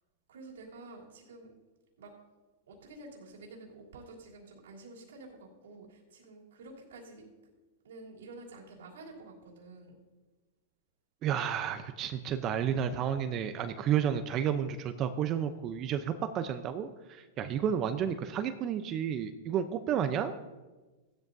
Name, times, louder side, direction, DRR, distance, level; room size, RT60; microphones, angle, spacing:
voice 1, 0.3-1.5 2.0-2.1 2.7-7.5 7.8-10.0, right 2 dB, 85° right, -4 dB, 3.2 m, -50 dB
voice 2, 11.2-20.3, right 8 dB, 35° right, 9 dB, 0.7 m, -31 dB
16.0 x 12.5 x 2.7 m, 1.2 s
hypercardioid pair, 130°, 0 cm